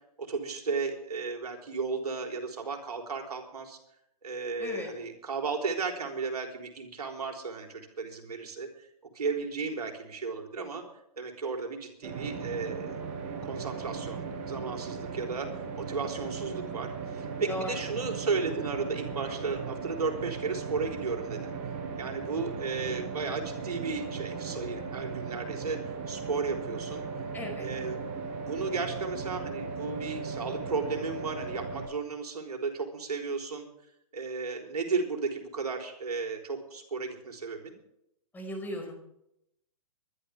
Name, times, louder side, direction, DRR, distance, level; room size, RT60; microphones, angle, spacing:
voice 1, 0.2-3.8 4.2-8.9 9.1-10.9 11.2-13.0 13.4-21.5 22.0-25.8 26.1-27.0 27.6-28.0 28.4-33.7 34.1-37.8, right 4 dB, 85° right, 3 dB, 3.7 m, -34 dB
voice 2, 4.6-4.9 17.5-17.8 27.3-27.7 38.3-39.0, left 1 dB, 10° left, 1 dB, 5.0 m, -36 dB
sound 1, 12.0-31.9, right 5 dB, 40° right, 6.3 m, -37 dB
23.5 x 11.5 x 3.5 m, 0.78 s
hypercardioid pair, 130°, 19 cm